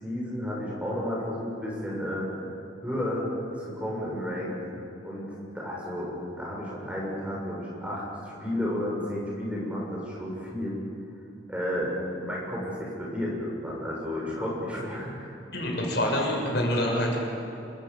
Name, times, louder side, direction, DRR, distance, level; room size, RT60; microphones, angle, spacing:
voice 1, 0.0-2.3 2.8-3.3 3.6-4.6 5.0-5.3 5.5-6.1 6.4-10.8 11.5-11.9 12.2-15.3, left 1 dB, 5° right, -4 dB, 7.0 m, -32 dB
voice 2, 15.5-17.2, left 1 dB, 60° left, -1 dB, 6.9 m, -26 dB
27.0 x 26.0 x 7.3 m, 2.9 s
head